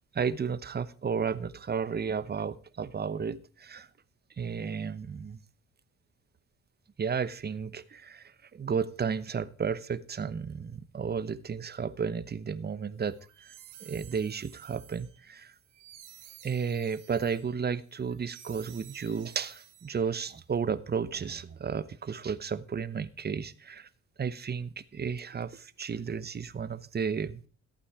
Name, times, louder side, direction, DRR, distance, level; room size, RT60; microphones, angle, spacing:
voice 1, 0.1-3.9 4.4-5.4 7.0-13.5 13.8-15.5 16.4-23.9 24.2-27.4, right 6 dB, 35° right, 14 dB, 0.9 m, -33 dB
sound 1, 13.1-20.3, right 10 dB, 90° right, 2.7 m, -53 dB
14.5 x 8.7 x 4.9 m, 0.39 s
cardioid pair, 90°, 30 cm